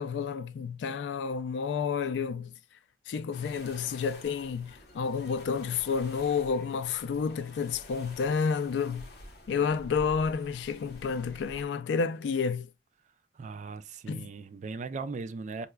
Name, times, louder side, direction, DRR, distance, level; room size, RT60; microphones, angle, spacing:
voice 1, 0.0-2.5 3.1-9.1 9.5-12.7 14.1-14.3, left 5 dB, 85° left, 0.3 m, -30 dB
sound 1, 3.3-11.7, left 1 dB, 60° left, 0.8 m, -49 dB
voice 2, 13.3-15.7, right 4 dB, 45° right, 0.3 m, -38 dB
4.6 x 2.1 x 2.2 m
head